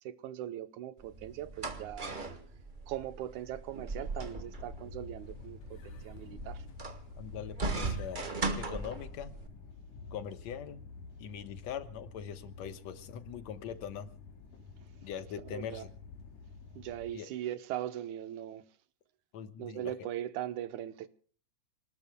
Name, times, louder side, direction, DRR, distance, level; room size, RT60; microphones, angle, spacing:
voice 1, 0.1-2.1 2.9-5.6 5.8-6.6 15.5-15.8 16.8-18.6 19.6-21.1, right 12 dB, 85° right, 2.3 m, -40 dB
sound 1, 1.0-9.5, right 3 dB, 35° right, 0.7 m, -39 dB
sound 2, 4.1-17.1, left 4 dB, 85° left, 3.3 m, -50 dB
voice 2, 7.2-9.4 10.1-10.8 11.2-14.1 15.0-15.9 17.1-17.3 19.3-19.9, left 8 dB, 70° left, 2.3 m, -42 dB
28.5 x 19.5 x 2.2 m
omnidirectional pair, 3.4 m